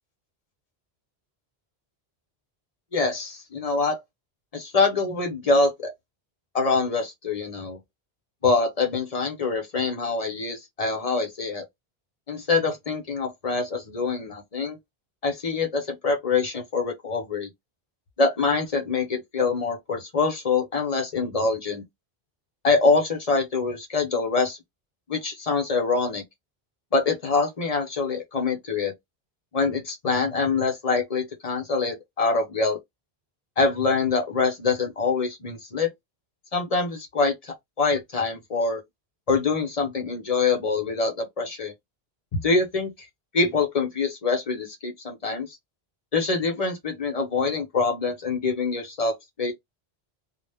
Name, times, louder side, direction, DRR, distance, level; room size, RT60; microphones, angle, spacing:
voice 1, 2.9-4.0 4.5-5.9 6.5-7.8 8.4-11.6 12.3-14.8 15.2-17.5 18.2-21.8 22.6-24.6 25.1-26.2 26.9-28.9 29.5-32.8 33.6-35.9 36.5-38.8 39.3-41.7 42.3-42.9 43.3-45.6 46.1-49.5, left 4 dB, 40° left, 0.7 m, -25 dB
2.1 x 2.0 x 3.3 m
omnidirectional pair, 1.0 m